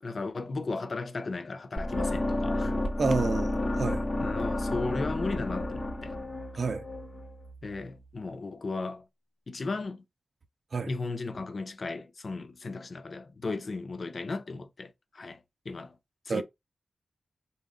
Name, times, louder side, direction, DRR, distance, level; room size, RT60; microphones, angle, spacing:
voice 1, 0.0-2.8 4.2-6.1 7.6-9.1 9.5-10.0 10.9-15.9 16.3-16.4, left 3 dB, 55° left, 0.6 m, -35 dB
sound 1, 1.8-7.8, left 1 dB, 35° left, 1.0 m, -31 dB
voice 2, 3.0-4.1 6.6-6.8 10.7-10.9 16.3-16.4, right 4 dB, 65° right, 0.5 m, -29 dB
4.1 x 2.4 x 3.6 m
wide cardioid pair, 90°, 0 cm